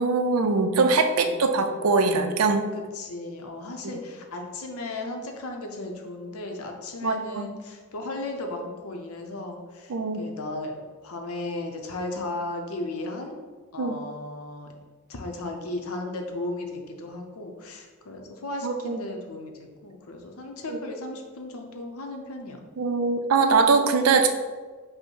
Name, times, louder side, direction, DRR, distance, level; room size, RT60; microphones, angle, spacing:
voice 1, 0.0-2.7 7.0-7.5 9.9-10.2 13.8-14.0 18.6-19.0 20.7-20.8 22.8-24.3, right 4 dB, 80° right, 7 dB, 0.5 m, -22 dB
voice 2, 1.2-1.8 2.9-13.4 13.7-14.7 15.1-22.6, left 2 dB, 80° left, 3 dB, 0.7 m, -35 dB
5.2 x 2.1 x 4.6 m, 1.4 s
head